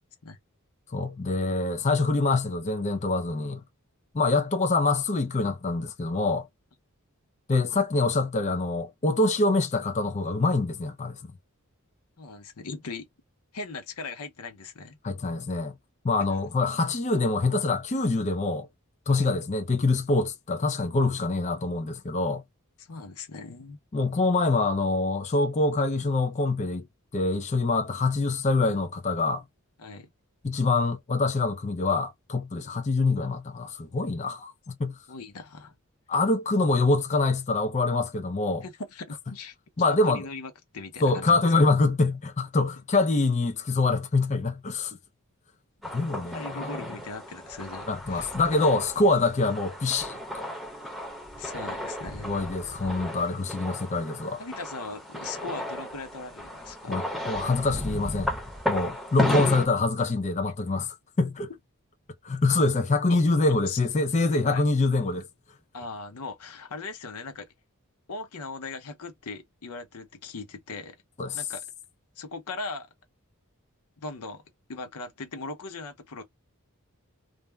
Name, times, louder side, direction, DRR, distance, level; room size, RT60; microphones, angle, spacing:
voice 1, 0.9-3.6 4.1-6.5 7.5-11.2 15.0-15.7 16.0-18.7 19.1-22.4 23.9-26.9 27.1-29.4 30.4-35.0 36.1-38.6 39.8-40.2 41.0-45.0 45.9-46.7 47.9-50.5 52.2-54.4 56.9-58.3 58.7-61.5 62.2-65.3 71.2-71.4, left 3 dB, 30° left, 0.5 m, -25 dB
voice 2, 12.2-13.1 13.5-15.0 16.2-16.3 19.1-19.3 22.8-23.8 29.8-30.1 35.1-35.8 38.6-41.4 46.3-48.3 51.4-52.3 53.2-53.3 54.4-57.0 59.4-59.5 63.1-63.2 63.7-63.8 64.5-64.6 65.7-67.5 68.1-71.0 71.3-71.6 72.2-72.9 74.0-74.4 74.7-76.2, left 3 dB, 90° left, 0.8 m, -39 dB
sound 1, 45.8-59.7, left 1 dB, ahead, 0.8 m, -34 dB
2.5 x 2.1 x 3.2 m
head